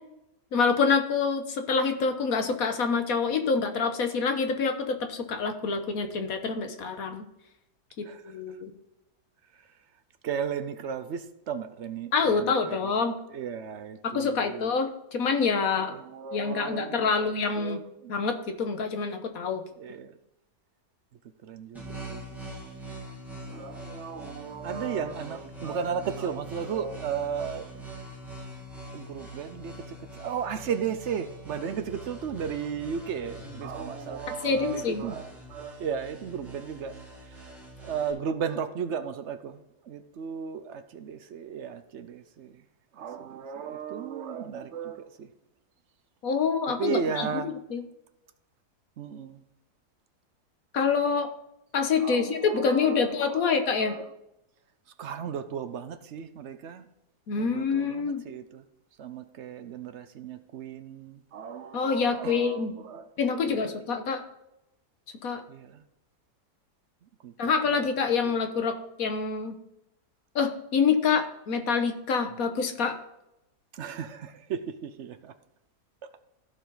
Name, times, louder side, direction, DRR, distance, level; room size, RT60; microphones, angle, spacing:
voice 1, 0.5-7.2 8.0-8.7 12.1-13.2 14.0-15.9 16.3-17.8 18.1-19.6 34.4-35.0 46.2-47.8 50.7-51.3 51.7-53.9 57.3-58.2 61.7-62.7 63.2-64.2 65.2-65.4 67.4-69.6 70.3-73.0, left 5 dB, 65° left, 1.4 m, -26 dB
voice 2, 8.0-8.6 9.5-9.7 10.2-12.9 13.3-14.7 15.7-18.1 19.8-20.2 21.4-22.3 23.5-27.8 28.9-36.9 37.2-37.5 37.8-42.6 42.9-45.3 46.7-47.6 49.0-49.4 52.0-54.2 55.0-56.9 57.4-58.6 59.0-63.8 65.5-65.8 67.2-67.9 68.2-68.4 73.7-75.3 76.0-76.1, right 7 dB, 60° right, 0.8 m, -35 dB
sound 1, 21.7-38.1, right 1 dB, ahead, 2.0 m, -43 dB
15.0 x 5.0 x 3.9 m
omnidirectional pair, 1.7 m